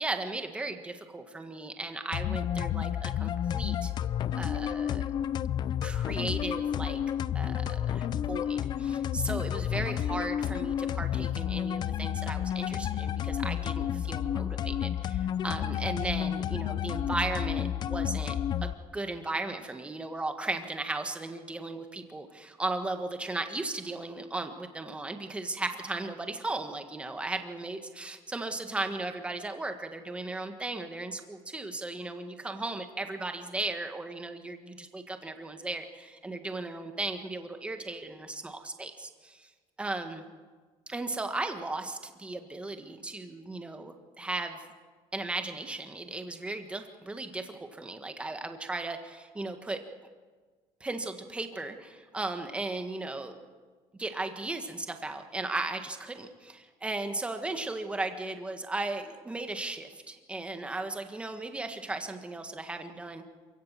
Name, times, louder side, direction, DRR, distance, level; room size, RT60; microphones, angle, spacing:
voice 1, 0.0-3.9 4.3-5.0 5.8-7.0 7.3-18.3 18.6-39.5 39.8-40.2 40.9-44.7 45.1-49.8 50.8-53.3 54.0-63.2, right 2 dB, 10° right, 6 dB, 1.6 m, -36 dB
sound 1, 2.1-18.7, left 10 dB, 40° left, 0.6 m, -31 dB
27.5 x 16.5 x 7.6 m, 1.5 s
cardioid pair, 170°, 11 cm